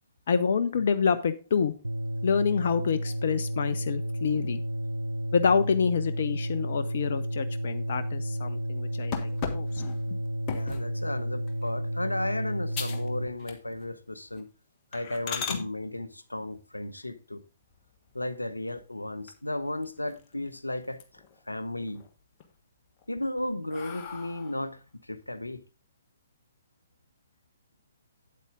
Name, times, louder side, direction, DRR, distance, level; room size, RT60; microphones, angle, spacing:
voice 1, 0.3-1.7 2.2-4.6 5.3-9.8 10.1-10.2 15.5-15.7, left 6 dB, 55° left, 0.6 m, -27 dB
sound 1, 1.8-13.3, equal, 85° right, 0.6 m, -32 dB
sound 2, 9.1-10.9 11.5-11.8 12.2-12.3 12.7-13.1 13.4-13.9 14.3-14.4 14.9-15.6 17.6-18.3 18.8-18.9 19.3-19.4 19.7-20.5 20.8-21.4 21.8-22.4 23.0-24.7, left 6 dB, 30° left, 1.4 m, -38 dB
voice 2, 10.5-14.5 14.9-17.4 18.1-21.0 21.5-22.0 23.1-25.6, left 1 dB, 85° left, 0.7 m, -34 dB
8.4 x 8.2 x 3.6 m
figure-of-eight pair, 120°, 0 cm